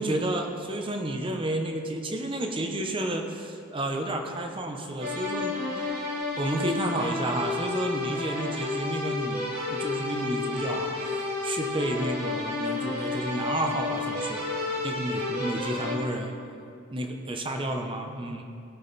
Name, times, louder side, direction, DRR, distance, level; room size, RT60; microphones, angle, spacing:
voice 1, 0.0-5.6 6.4-14.4 14.8-16.3 16.9-18.4, right 1 dB, 25° right, 3 dB, 0.8 m, -31 dB
sound 1, 5.0-16.0, left 3 dB, 45° right, 2.5 m, -31 dB
17.5 x 6.4 x 4.1 m, 2.5 s
head